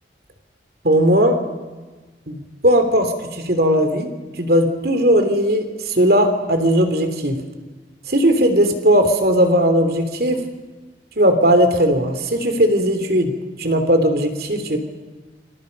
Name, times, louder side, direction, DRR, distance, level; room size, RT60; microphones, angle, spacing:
voice 1, 0.8-1.4 2.3-4.1 4.4-7.4 8.1-10.4 11.2-13.3 13.6-14.8, equal, 55° right, 7 dB, 3.1 m, -17 dB
29.0 x 27.0 x 5.4 m, 1.3 s
head